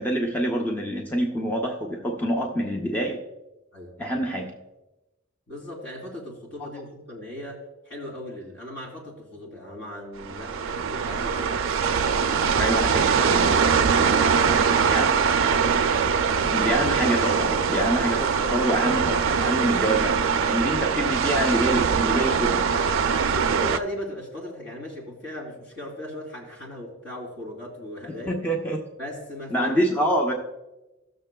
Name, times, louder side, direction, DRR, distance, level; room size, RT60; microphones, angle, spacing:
voice 1, 0.0-3.2 4.0-4.5 12.6-13.5 14.9-15.1 16.5-22.6 28.3-28.8 29.5-30.3, equal, 10° left, 0 dB, 0.6 m, -26 dB
voice 2, 5.5-11.8 13.9-15.0 15.9-16.1 23.3-28.4 29.0-29.7, left 1 dB, 60° left, -2 dB, 2.7 m, -37 dB
sound 1, 10.2-23.8, right 6 dB, 60° right, 0.4 m, -22 dB
17.0 x 6.6 x 2.2 m, 1.0 s
head